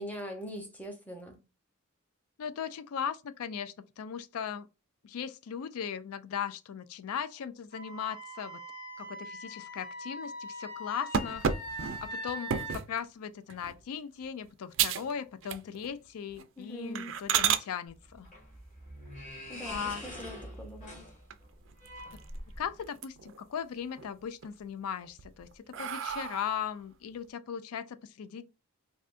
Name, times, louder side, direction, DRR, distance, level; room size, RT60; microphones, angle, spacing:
voice 1, 0.0-1.4 16.6-17.1 19.5-21.0, equal, 5° left, 0.7 m, -42 dB
voice 2, 2.4-4.7 5.0-8.6 9.0-11.4 12.0-18.3 19.7-20.0 22.6-28.5, left 7 dB, 80° left, 0.4 m, -38 dB
Wind instrument woodwind instrument, 7.7-12.8, equal, 65° left, 1.2 m, -42 dB
sound 1, 11.1-12.9 13.5-13.8 14.2-14.3 14.7-15.1 15.4-16.0 16.3-16.4 17.0-17.7 19.7-20.3 20.8-20.9 21.3-21.4 21.7-22.5 22.8-23.4 23.8-24.5 25.0-26.7, right 8 dB, 55° right, 0.3 m, -32 dB
sound 2, 17.9-22.8, equal, 35° left, 1.8 m, -44 dB
3.4 x 2.6 x 2.5 m
head